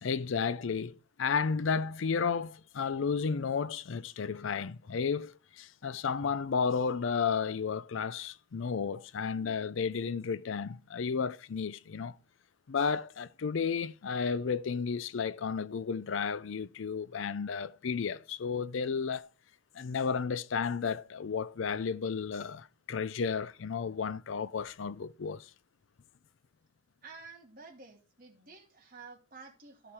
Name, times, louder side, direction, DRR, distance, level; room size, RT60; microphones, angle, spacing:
voice 1, 0.0-12.2 12.7-19.3 19.7-25.5, left 5 dB, 70° left, 0.5 m, -33 dB
voice 2, 27.0-29.9, right 4 dB, 45° right, 3.0 m, -51 dB
13.5 x 4.9 x 4.3 m
head